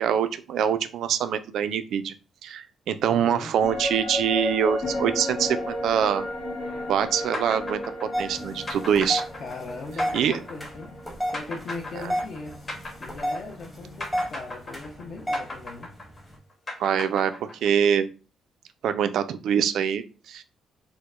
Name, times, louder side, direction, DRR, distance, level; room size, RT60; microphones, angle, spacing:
voice 1, 0.0-2.1 2.4-6.2 6.9-7.8 8.2-9.2 10.1-10.4 16.8-18.1 18.8-20.4, right 8 dB, 70° right, 10 dB, 0.3 m, -24 dB
voice 2, 3.1-3.5 9.4-11.0 11.3-12.7 13.0-15.9, left 3 dB, 45° left, 0 dB, 0.5 m, -39 dB
sound 1, 3.6-13.1 13.4-13.5, left 1 dB, 75° left, 1.2 m, -34 dB
sound 2, 7.3-13.7 14.0-17.9, left 2 dB, 30° left, 1.0 m, -37 dB
sound 3, 8.1-16.4, equal, 5° left, 0.8 m, -33 dB
4.5 x 2.0 x 2.4 m, 0.34 s
cardioid pair, 155°, 0 cm